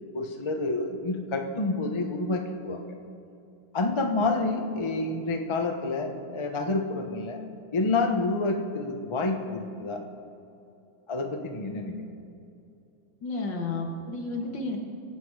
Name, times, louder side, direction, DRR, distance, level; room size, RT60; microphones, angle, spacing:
voice 1, 0.1-2.8 3.7-7.4 7.7-10.0 11.1-12.0, left 3 dB, 25° left, 3 dB, 0.7 m, -28 dB
voice 2, 13.2-14.8, left 3 dB, 75° left, 1 dB, 2.4 m, -32 dB
23.0 x 8.4 x 4.8 m, 2.7 s
omnidirectional pair, 2.0 m